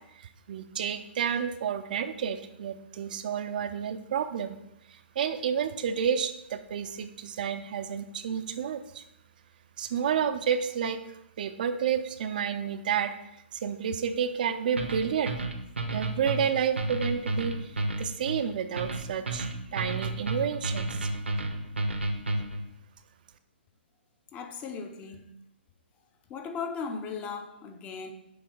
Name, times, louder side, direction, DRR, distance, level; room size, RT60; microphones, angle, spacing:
voice 1, 0.2-4.6 4.9-9.0 9.8-13.2 13.5-15.4 15.9-17.7 18.0-21.1, right 7 dB, 45° right, 0.5 m, -30 dB
sound 1, 14.8-22.7, right 2 dB, 75° right, 0.9 m, -31 dB
voice 2, 24.3-25.3 26.3-28.1, left 5 dB, 20° left, 0.6 m, -37 dB
7.1 x 3.5 x 4.8 m
figure-of-eight pair, 120°, 6 cm